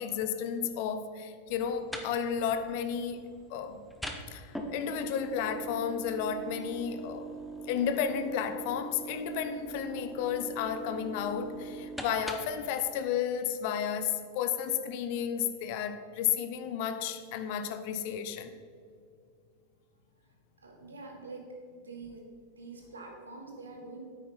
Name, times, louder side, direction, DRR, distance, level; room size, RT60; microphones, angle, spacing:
voice 1, 0.0-3.2 3.5-3.9 4.3-7.4 7.7-18.6, left 8 dB, 45° left, 10 dB, 0.7 m, -32 dB
sound 1, 1.5-12.7, right 2 dB, ahead, 0.9 m, -42 dB
voice 2, 20.6-22.3 22.6-24.0, right 3 dB, 75° right, 1 dB, 1.8 m, -45 dB
9.4 x 8.4 x 3.8 m, 2.3 s
figure-of-eight pair, 90°, 0 cm